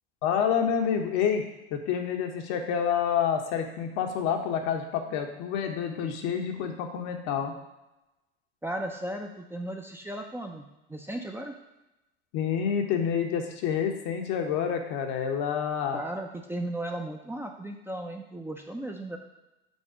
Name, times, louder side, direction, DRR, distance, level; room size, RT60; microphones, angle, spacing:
voice 1, 0.2-7.6 12.3-16.0, left 7 dB, 55° left, 4 dB, 1.1 m, -28 dB
voice 2, 8.6-11.5 15.9-19.2, right 1 dB, 5° right, 2 dB, 0.6 m, -36 dB
5.4 x 4.3 x 4.9 m, 0.97 s
hypercardioid pair, 75°, 33 cm